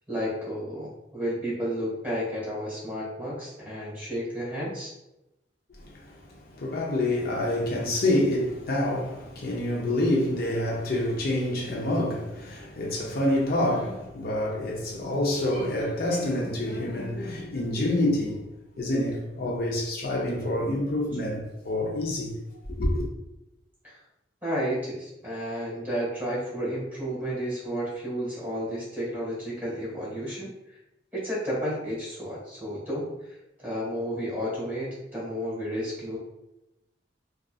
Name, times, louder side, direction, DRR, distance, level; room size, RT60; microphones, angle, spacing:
voice 1, 0.1-4.9 23.8-24.0 24.4-30.8 31.1-36.2, equal, 10° right, 1.3 m, -32 dB
voice 2, 5.7-18.4 18.8-22.4 22.7-23.0, left 1 dB, 60° left, 0.6 m, -27 dB
2.5 x 2.3 x 2.3 m
head